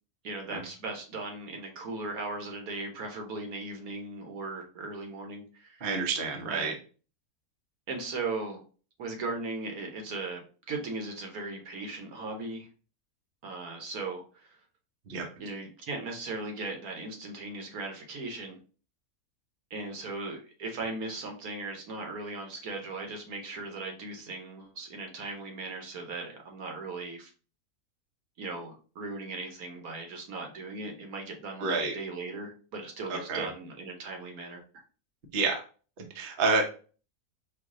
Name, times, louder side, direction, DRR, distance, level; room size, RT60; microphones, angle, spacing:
voice 1, 0.2-5.9 6.4-6.8 7.9-8.6 9.0-12.7 13.4-14.6 15.4-18.6 19.7-27.3 28.4-34.6, right 3 dB, 75° right, 3 dB, 1.4 m, -38 dB
voice 2, 5.8-6.7 15.1-15.3 31.6-31.9 33.1-33.5 35.3-35.6 36.0-36.6, right 4 dB, 45° right, 3 dB, 0.9 m, -29 dB
4.7 x 2.6 x 3.6 m, 0.38 s
omnidirectional pair, 1.6 m